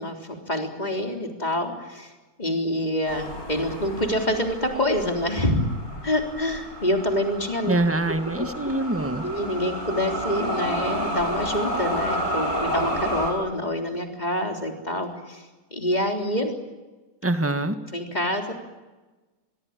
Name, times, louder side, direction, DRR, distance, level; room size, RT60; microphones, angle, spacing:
voice 1, 0.0-2.1 2.4-5.6 6.0-7.8 8.4-8.5 9.2-15.4 15.7-16.5 17.9-18.5, left 1 dB, 25° left, 3 dB, 3.8 m, -26 dB
sound 1, 3.1-13.3, equal, 70° left, 6.3 m, -31 dB
voice 2, 7.7-9.2 17.2-17.8, right 2 dB, 10° right, 9 dB, 1.5 m, -24 dB
25.0 x 22.0 x 8.8 m, 1.2 s
omnidirectional pair, 1.6 m